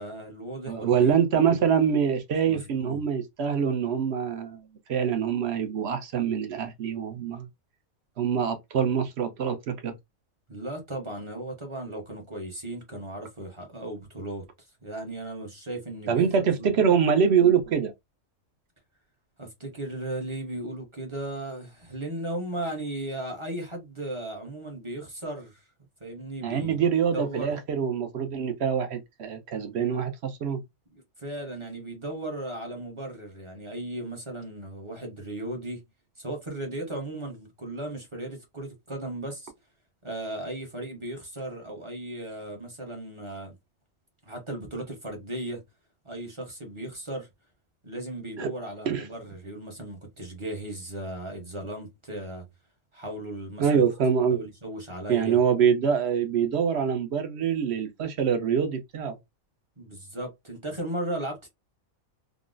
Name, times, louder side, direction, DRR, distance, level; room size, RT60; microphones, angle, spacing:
voice 1, 0.0-1.1 1.4-1.6 2.5-3.0 10.5-14.5 14.8-16.3 16.6-16.8 19.4-25.6 26.0-26.8 27.1-27.5 30.9-35.8 36.2-39.5 40.0-43.5 44.2-45.6 46.0-47.3 47.8-52.5 52.9-53.8 54.3-55.4 59.8-61.5, right 1 dB, 30° right, 0.7 m, -36 dB
voice 2, 0.7-4.6 4.9-7.5 8.2-9.9 16.1-17.9 26.4-30.6 48.4-48.5 48.9-49.1 53.6-54.4 55.1-59.2, right 7 dB, 60° right, 0.8 m, -25 dB
3.8 x 2.0 x 2.4 m
omnidirectional pair, 1.5 m